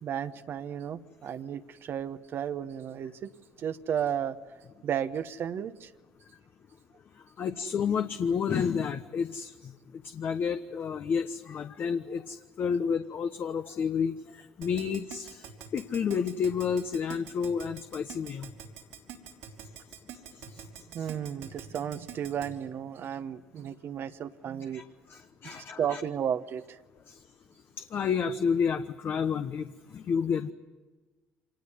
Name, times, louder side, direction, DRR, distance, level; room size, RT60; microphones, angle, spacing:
voice 1, 0.0-3.3 3.6-4.4 4.8-5.9 20.9-24.8 25.4-26.6, right 9 dB, 55° right, 9 dB, 1.0 m, -33 dB
voice 2, 7.4-9.7 10.0-15.5 15.7-18.5 20.5-20.6 21.0-21.1 24.7-24.8 25.1-26.0 27.1-27.2 27.8-29.7 29.9-30.5, left 6 dB, 50° left, 8 dB, 1.0 m, -30 dB
Keyboard (musical), 14.6-22.5, right 9 dB, 80° right, 3.3 m, -44 dB
25.5 x 19.5 x 9.7 m, 1.3 s
hypercardioid pair, 65°, 5 cm